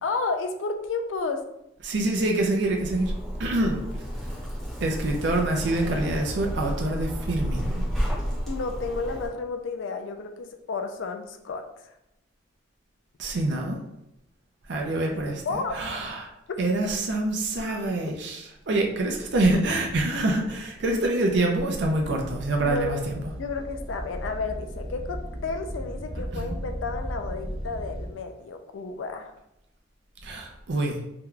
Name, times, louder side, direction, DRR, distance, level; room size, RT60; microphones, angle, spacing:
voice 1, 0.0-1.4 8.5-11.6 15.5-15.7 22.6-23.1 23.4-29.3, left 4 dB, 75° left, 6 dB, 0.4 m, -32 dB
voice 2, 1.8-3.1 3.4-3.9 4.8-7.8 13.2-13.8 14.7-16.3 16.6-23.3 26.3-26.6 30.2-31.0, right 2 dB, 65° right, 1 dB, 0.5 m, -26 dB
Zipper (clothing), 2.6-9.3, equal, ahead, 1.0 m, -31 dB
sound 1, 21.9-28.1, equal, 35° right, 0.9 m, -36 dB
3.7 x 2.8 x 2.3 m, 0.85 s
head